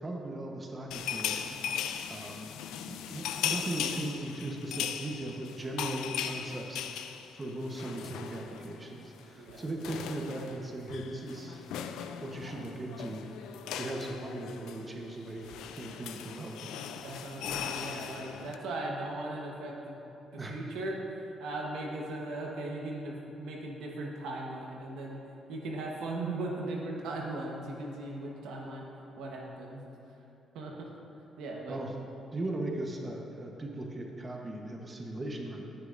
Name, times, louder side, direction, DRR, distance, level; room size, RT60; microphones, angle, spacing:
voice 1, 0.0-2.5 2.9-6.8 7.3-11.6 12.2-13.2 13.7-16.6 20.4-20.6 31.7-31.9 32.3-35.6, right 1 dB, 25° right, 0 dB, 1.0 m, -38 dB
sound 1, 0.9-8.8 9.0-9.2 9.5-18.6, left 9 dB, 90° left, 0.4 m, -38 dB
voice 2, 16.9-19.9 20.5-25.2 25.5-28.8 29.2-29.9 30.5-30.9 31.4-31.8, right 2 dB, 90° right, -1 dB, 1.1 m, -38 dB
13.5 x 6.5 x 2.6 m, 2.9 s
cardioid pair, 90°, 0 cm